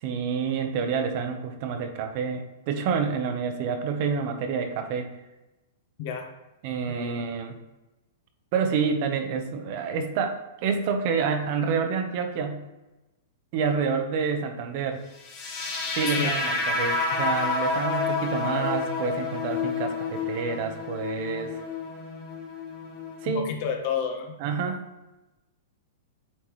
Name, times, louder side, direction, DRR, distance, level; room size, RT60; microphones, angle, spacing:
voice 1, 0.0-5.1 6.6-7.5 8.5-12.6 13.5-15.0 15.9-21.6 23.2-23.5 24.4-24.8, right 6 dB, 50° right, 6 dB, 0.8 m, -28 dB
voice 2, 6.9-7.2 16.1-16.3 23.3-24.3, left 7 dB, 50° left, 4 dB, 1.0 m, -30 dB
sound 1, 15.2-23.3, left 4 dB, 35° left, 1.5 m, -29 dB
8.5 x 3.5 x 3.1 m, 1.0 s
hypercardioid pair, 135°, 0 cm